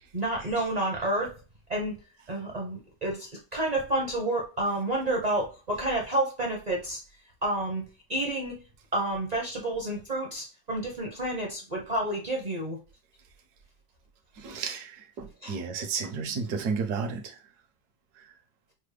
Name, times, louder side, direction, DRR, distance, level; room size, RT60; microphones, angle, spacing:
voice 1, 0.1-1.3 1.7-1.9 2.3-7.0 7.4-7.8 8.1-8.6 8.9-12.8 15.4-15.6, right 1 dB, 40° right, -1 dB, 0.6 m, -29 dB
voice 2, 14.4-14.9 15.2-17.2, right 5 dB, 70° right, 4 dB, 1.3 m, -31 dB
5.8 x 2.1 x 3.2 m, 0.34 s
omnidirectional pair, 1.7 m